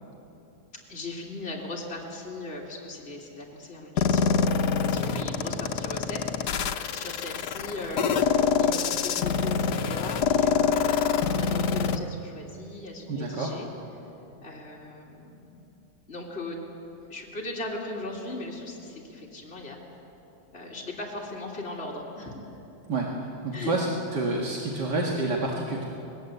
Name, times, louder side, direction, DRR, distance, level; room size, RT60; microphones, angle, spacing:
voice 1, 0.9-13.7 14.4-15.6 16.1-16.6 17.1-19.8 20.5-22.4 23.5-23.8, left 2 dB, 35° left, -3 dB, 3.2 m, -38 dB
sound 1, 4.0-12.0, left 6 dB, 75° left, 1.5 m, -25 dB
voice 2, 13.1-13.5 22.9-23.9 24.1-25.8, right 2 dB, 80° right, -2 dB, 2.5 m, -28 dB
28.0 x 20.5 x 8.1 m, 3.0 s
omnidirectional pair, 1.8 m